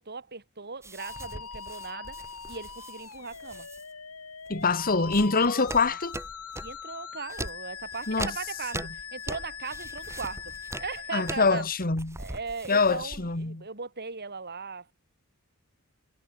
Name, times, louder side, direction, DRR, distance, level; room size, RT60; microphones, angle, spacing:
voice 1, 0.0-3.7 5.5-6.0 6.6-10.5 10.8-11.7 12.2-14.9, right 5 dB, 50° right, 5.6 m, -38 dB
sound 1, 0.8-3.8 4.5-6.8 7.3-13.5, right 2 dB, 15° right, 2.8 m, -41 dB
Musical instrument, 1.0-11.6, left 6 dB, 80° left, 7.5 m, -41 dB
voice 2, 4.5-6.2 8.1-8.3 11.1-12.2 12.7-13.6, left 4 dB, 40° left, 2.1 m, -25 dB
head